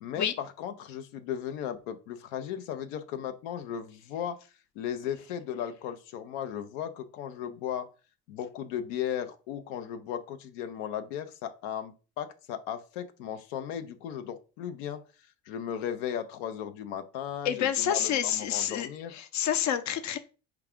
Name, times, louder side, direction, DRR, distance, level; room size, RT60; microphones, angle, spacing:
voice 1, 0.0-4.4 4.8-7.9 8.3-15.0 15.5-19.1, left 9 dB, 85° left, 8 dB, 0.6 m, -36 dB
voice 2, 17.4-20.2, left 9 dB, 50° left, 11 dB, 0.6 m, -28 dB
4.6 x 2.4 x 3.4 m, 0.33 s
supercardioid pair, 80°, 37 cm